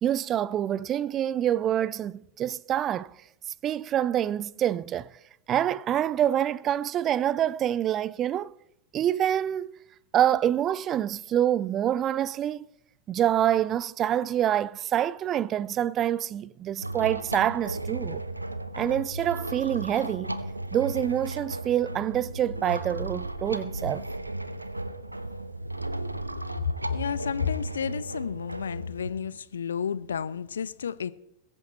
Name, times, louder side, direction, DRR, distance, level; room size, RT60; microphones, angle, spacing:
voice 1, 0.0-3.1 3.6-5.1 5.5-8.5 8.9-9.7 10.1-12.7 13.1-18.2 18.8-20.3 20.7-24.1, right 11 dB, 30° right, 0.4 m, -26 dB
sound 1, 16.8-29.1, right 2 dB, 85° right, 0.8 m, -35 dB
voice 2, 26.9-31.1, left 7 dB, 70° left, 0.6 m, -31 dB
21.5 x 9.0 x 4.2 m
figure-of-eight pair, 90°, 0 cm